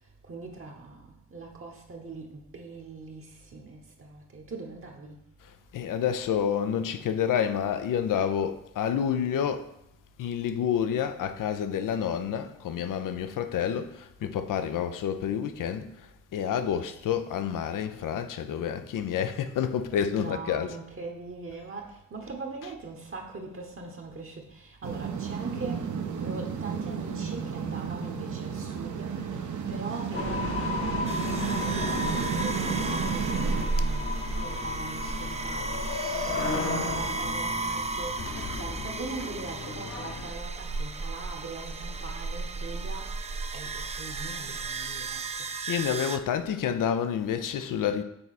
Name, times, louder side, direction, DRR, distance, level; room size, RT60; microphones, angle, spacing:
voice 1, 0.3-5.2 20.2-38.2 38.6-43.1 43.5-45.7, right 3 dB, 40° right, 1.0 m, -41 dB
voice 2, 5.7-9.7 10.2-15.9 16.3-20.8 45.7-48.0, left 8 dB, 75° left, 0.6 m, -29 dB
sound 1, 24.8-33.7, right 7 dB, 65° right, 0.8 m, -32 dB
sound 2, 30.1-40.3, left 3 dB, 45° left, 1.0 m, -34 dB
sound 3, 31.1-46.2, right 3 dB, 20° right, 0.4 m, -34 dB
6.9 x 3.4 x 4.1 m
cardioid pair, 65°, 32 cm